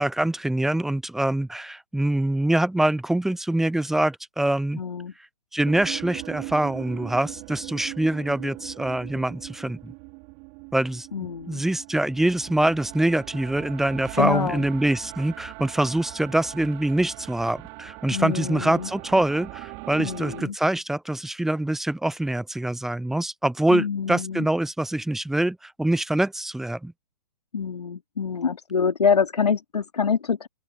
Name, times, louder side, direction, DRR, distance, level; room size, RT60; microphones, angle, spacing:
voice 1, 0.0-4.8 5.5-9.9 10.7-11.1 11.5-26.9, right 1 dB, ahead, 0.6 m, -24 dB
voice 2, 4.8-5.1 11.1-11.6 14.2-14.7 18.1-18.9 20.0-20.6 23.7-24.5 27.5-30.5, left 6 dB, 70° left, 3.0 m, -26 dB
sound 1, 5.6-20.4, right 35 dB, 30° right, 4.7 m, -40 dB
open air
figure-of-eight pair, 125°, 21 cm